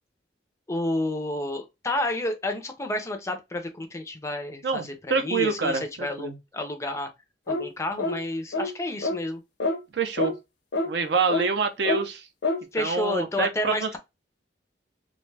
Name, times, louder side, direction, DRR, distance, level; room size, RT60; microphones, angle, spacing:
voice 1, 0.7-7.1 7.5-9.4 12.7-14.0, left 1 dB, 15° left, 0.4 m, -30 dB
voice 2, 4.6-6.4 9.9-10.3 10.8-12.3 12.7-14.0, right 4 dB, 65° right, 0.5 m, -26 dB
sound 1, 7.5-7.7 8.0-8.2 8.5-8.7 9.0-9.2 9.6-9.8 10.2-10.3 10.7-10.9 11.3-11.5 11.8-12.0 12.4-12.6, left 2 dB, 70° left, 0.5 m, -26 dB
2.4 x 2.2 x 3.2 m
head